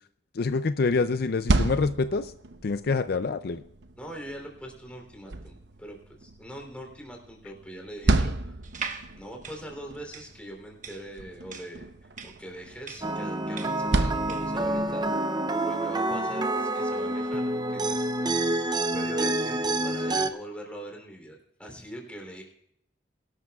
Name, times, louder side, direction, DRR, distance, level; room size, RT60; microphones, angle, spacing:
voice 1, 0.4-2.3 2.6-3.6, left 4 dB, 60° left, 11 dB, 0.5 m, -26 dB
sound 1, 1.2-15.1, right 2 dB, 85° right, 0.9 m, -33 dB
voice 2, 4.0-8.6 9.1-15.1 15.6-18.4 18.9-22.4, right 1 dB, 5° left, 1 dB, 3.3 m, -42 dB
sound 2, 8.6-14.6, right 5 dB, 45° right, 1.1 m, -41 dB
sound 3, 13.0-20.3, right 1 dB, 25° right, 0.6 m, -28 dB
22.5 x 12.0 x 2.4 m, 0.74 s
head